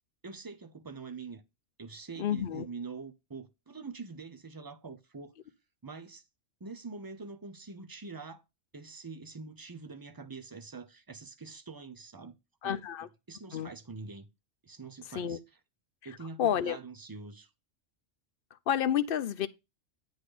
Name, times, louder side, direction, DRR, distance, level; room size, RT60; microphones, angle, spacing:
voice 1, 0.2-1.4 1.8-5.3 5.8-6.2 6.6-8.4 8.7-12.4 12.6-12.8 13.3-14.3 14.6-15.4 16.0-17.5, right 4 dB, 25° right, 0.6 m, -44 dB
voice 2, 2.2-2.7 12.6-13.1 13.5-13.7 15.1-15.4 16.4-16.8 18.7-19.5, left 9 dB, 55° left, 0.7 m, -30 dB
9.9 x 4.0 x 5.0 m
omnidirectional pair, 1.2 m